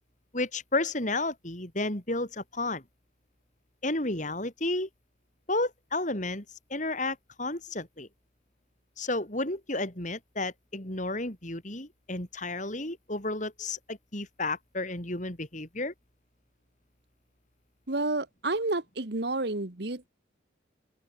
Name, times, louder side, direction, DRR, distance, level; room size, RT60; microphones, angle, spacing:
voice 1, 0.3-2.8 3.8-4.9 5.5-6.4 6.7-8.1 9.0-15.9, left 2 dB, 40° left, 4.4 m, -32 dB
voice 2, 17.9-20.1, right 2 dB, 55° right, 1.5 m, -30 dB
open air
head